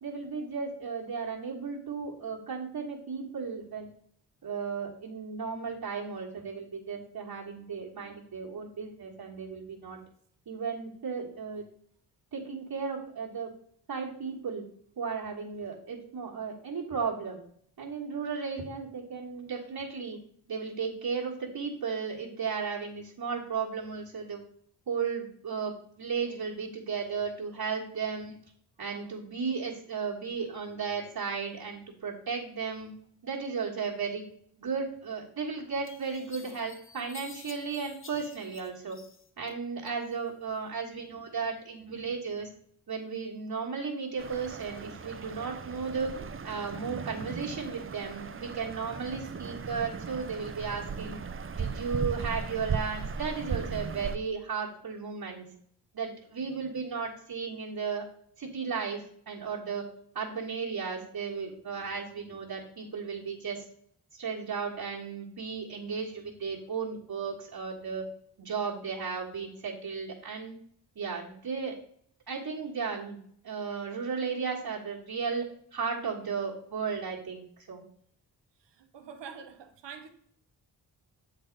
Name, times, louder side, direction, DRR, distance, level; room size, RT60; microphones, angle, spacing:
voice 1, 0.0-3.9 4.4-10.0 10.5-11.6 12.3-13.5 13.9-14.6 15.0-17.4 17.8-20.2 20.5-24.4 24.9-28.4 28.8-32.9 33.2-34.3 34.6-39.0 39.4-42.5 42.9-46.1 46.4-51.2 51.5-55.5 55.9-58.1 58.4-59.9 60.2-63.7 64.1-68.0 68.4-70.6 71.0-71.8 72.3-73.2 73.4-77.8, right 5 dB, 60° right, 1.6 m, -35 dB
sound 1, 35.1-35.2 35.8-39.5 39.9-40.6, left 4 dB, 30° left, 0.8 m, -50 dB
sound 2, 44.2-54.2, right 5 dB, 30° right, 0.6 m, -37 dB
voice 2, 78.6-80.1, right 6 dB, 85° right, 1.0 m, -45 dB
7.1 x 4.0 x 5.2 m
cardioid pair, 60°, 41 cm